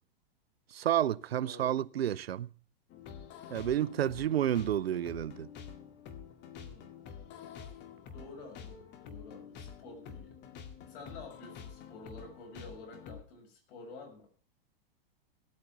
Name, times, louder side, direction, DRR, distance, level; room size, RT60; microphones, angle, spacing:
voice 1, 0.7-2.5 3.5-5.5, right 11 dB, 90° right, 0.6 m, -30 dB
voice 2, 1.4-1.8 3.9-4.3 6.6-6.9 8.1-10.4 10.9-14.3, left 3 dB, 60° left, 7.2 m, -50 dB
sound 1, 2.9-13.2, left 7 dB, 35° left, 2.0 m, -48 dB
18.0 x 8.7 x 6.0 m
hypercardioid pair, 115°, 30 cm